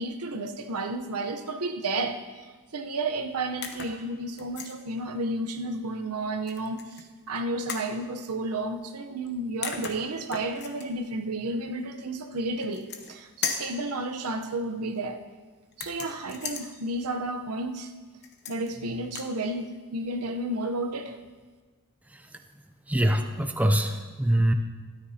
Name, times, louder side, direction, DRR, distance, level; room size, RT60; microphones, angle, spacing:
voice 1, 0.0-2.2 2.7-15.2 15.8-17.9 18.5-21.1, right 2 dB, 85° right, 6 dB, 0.8 m, -32 dB
sound 1, 3.6-4.0 4.4-4.8 6.5-7.0 7.7-7.9 9.3-9.4 9.6-10.9 12.6-13.2 13.4-13.8 15.7-16.7 18.2-18.7 19.0-19.3, left 6 dB, 50° left, 1.0 m, -36 dB
voice 2, 22.9-24.5, right 1 dB, 5° right, 6 dB, 0.5 m, -23 dB
13.0 x 13.0 x 2.8 m, 1.4 s
head